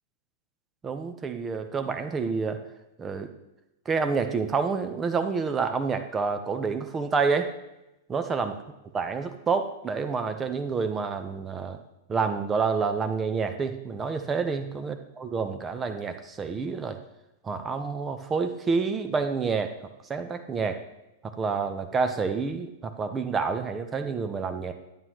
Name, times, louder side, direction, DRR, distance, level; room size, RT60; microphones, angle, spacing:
voice 1, 0.8-2.6 3.0-3.3 3.9-7.5 8.1-8.5 8.9-11.8 12.1-17.0 17.4-19.7 20.1-20.8 21.4-24.7, right 5 dB, 20° right, 8 dB, 0.9 m, -28 dB
10.5 x 8.6 x 3.1 m, 0.93 s
figure-of-eight pair, 100°, 0 cm